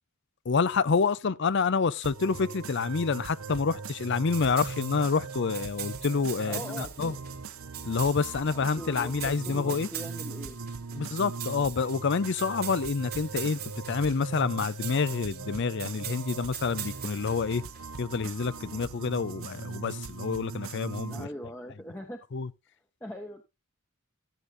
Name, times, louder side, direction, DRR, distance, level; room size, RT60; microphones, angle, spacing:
voice 1, 0.5-7.1 7.9-9.9 11.0-17.6 18.0-21.3 22.3-22.5, left 5 dB, 55° left, 0.5 m, -28 dB
sound 1, 2.0-21.2, right 4 dB, 75° right, 0.8 m, -40 dB
sound 2, 4.3-17.8, right 11 dB, 45° right, 1.6 m, -42 dB
voice 2, 6.5-7.2 8.5-10.6 10.9-11.1 18.6-18.9 21.1-22.2 23.0-23.4, equal, 10° left, 1.0 m, -42 dB
13.0 x 8.1 x 2.6 m
head